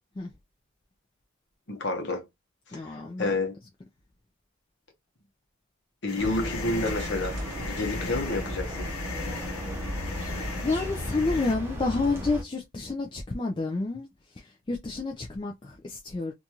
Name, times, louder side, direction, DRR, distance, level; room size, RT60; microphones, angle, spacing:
voice 1, 1.7-2.2 2.7-3.5 6.0-8.9, left 2 dB, 55° left, 0.9 m, -30 dB
voice 2, 2.7-3.3 10.0-14.1 14.4-16.3, left 3 dB, 20° left, 0.3 m, -30 dB
sound 1, 6.0-12.0, right 1 dB, 55° right, 0.6 m, -45 dB
sound 2, 6.1-11.5, left 4 dB, 80° left, 0.6 m, -38 dB
sound 3, 6.2-12.4, equal, 10° right, 0.7 m, -35 dB
2.6 x 2.3 x 2.8 m
head